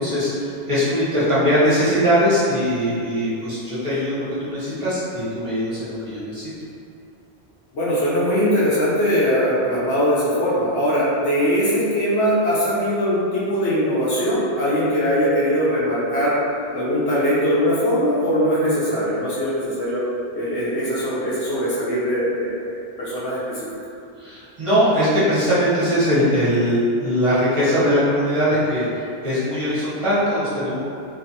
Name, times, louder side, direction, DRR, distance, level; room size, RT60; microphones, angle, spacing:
voice 1, 0.0-6.5 24.2-30.8, equal, 30° right, -12 dB, 0.8 m, -21 dB
voice 2, 7.7-16.4 16.7-20.0 20.3-22.7 23.0-23.7, equal, 80° left, -9 dB, 1.0 m, -21 dB
2.5 x 2.3 x 2.6 m, 2.5 s
omnidirectional pair, 1.1 m